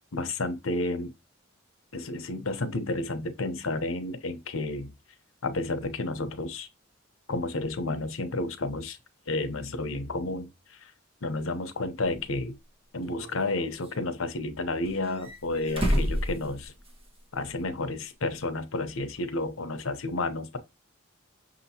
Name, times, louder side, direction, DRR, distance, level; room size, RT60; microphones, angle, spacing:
voice 1, 0.1-1.1 1.9-4.9 5.4-6.7 7.3-9.0 9.3-10.9 11.2-12.6 12.9-16.7 17.3-20.6, left 2 dB, 90° left, 0.8 m, -31 dB
sound 1, 12.0-12.1 13.0-13.9 14.8-17.2 17.5-17.6 19.2-19.3, equal, 30° right, 1.5 m, -30 dB
6.2 x 2.9 x 2.8 m
head